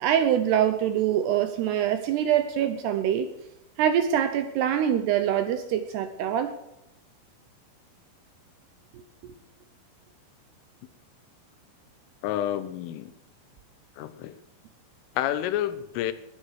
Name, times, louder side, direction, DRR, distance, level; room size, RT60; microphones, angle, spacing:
voice 1, 0.0-3.3 3.8-6.5, right 10 dB, 80° right, 9 dB, 2.5 m, -24 dB
voice 2, 12.2-13.1 14.0-14.4 15.2-16.1, left 12 dB, 90° left, 12 dB, 3.5 m, -29 dB
20.5 x 7.9 x 6.5 m, 0.86 s
omnidirectional pair, 5.6 m